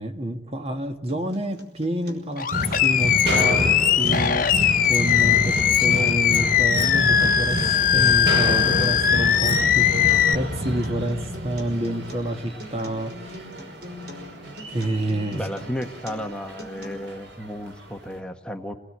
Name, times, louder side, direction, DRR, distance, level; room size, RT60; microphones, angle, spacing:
voice 1, 0.0-2.5 2.8-4.6 4.9-13.4 14.7-15.7, right 1 dB, 35° right, 1.8 m, -29 dB
Acoustic guitar, 1.1-17.1, left 2 dB, 65° right, 5.5 m, -42 dB
Animal, 2.4-10.3, left 9 dB, 50° left, 1.3 m, -20 dB
sound 1, 2.5-17.8, equal, 80° right, 4.8 m, -29 dB
voice 2, 15.3-18.7, equal, 5° left, 1.4 m, -33 dB
27.5 x 19.5 x 8.8 m
head